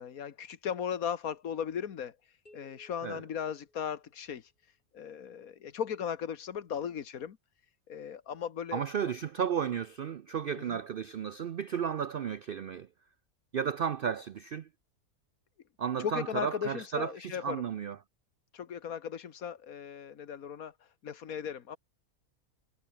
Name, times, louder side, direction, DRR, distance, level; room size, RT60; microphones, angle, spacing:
voice 1, 0.0-7.4 7.9-8.9 10.6-10.8 16.0-17.6 18.5-21.8, left 8 dB, 75° left, 1.7 m, -37 dB
sound 1, 2.5-4.4, left 1 dB, 30° left, 7.4 m, -61 dB
voice 2, 8.7-12.9 13.5-14.7 15.8-18.0, right 7 dB, 60° right, 0.6 m, -33 dB
omnidirectional pair, 1.5 m